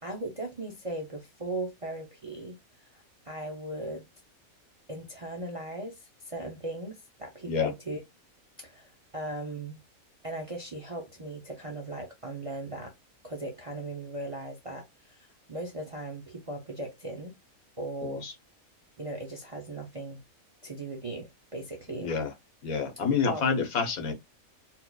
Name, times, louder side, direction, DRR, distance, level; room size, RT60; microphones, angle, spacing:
voice 1, 0.0-4.1 4.9-8.0 8.6-9.8 10.2-12.9 13.2-17.4 17.8-18.3 19.0-20.2 20.6-22.1 23.3-23.4, right 2 dB, 40° right, 0.5 m, -38 dB
voice 2, 18.0-18.3 21.9-22.3 22.6-24.1, left 5 dB, 85° left, 1.5 m, -28 dB
4.3 x 2.4 x 2.3 m
omnidirectional pair, 1.5 m